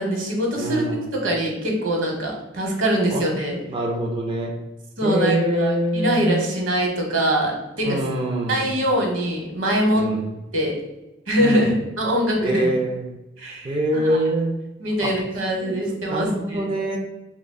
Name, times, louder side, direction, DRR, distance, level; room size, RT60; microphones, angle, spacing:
voice 1, 0.0-0.8 1.1-3.6 5.0-8.0 8.5-10.1 10.5-10.7 11.3-12.7 13.4-14.2 14.8-16.7, equal, 80° right, 1 dB, 1.0 m, -23 dB
voice 2, 0.6-1.1 3.1-3.2 3.7-4.5 5.0-6.5 7.8-8.7 10.0-10.2 11.4-11.7 12.4-13.1 13.6-14.5 15.0-15.1 15.6-15.8 16.1-17.0, right 1 dB, 25° right, 0 dB, 0.4 m, -24 dB
6.1 x 2.2 x 2.2 m, 1.0 s
head